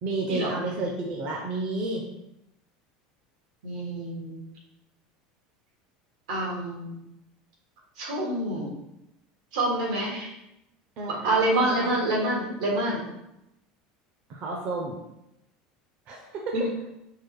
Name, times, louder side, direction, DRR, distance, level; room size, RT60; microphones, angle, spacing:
voice 1, 0.0-2.0 11.0-11.9 14.3-15.0 16.1-16.5, right 2 dB, 40° right, 0 dB, 0.6 m, -31 dB
voice 2, 3.6-4.4 6.3-7.0 8.0-8.7 9.5-10.3 11.2-13.0 16.5-16.6, right 1 dB, 85° right, -2 dB, 1.6 m, -27 dB
4.6 x 2.2 x 4.7 m, 0.85 s
cardioid pair, 160°, 3 cm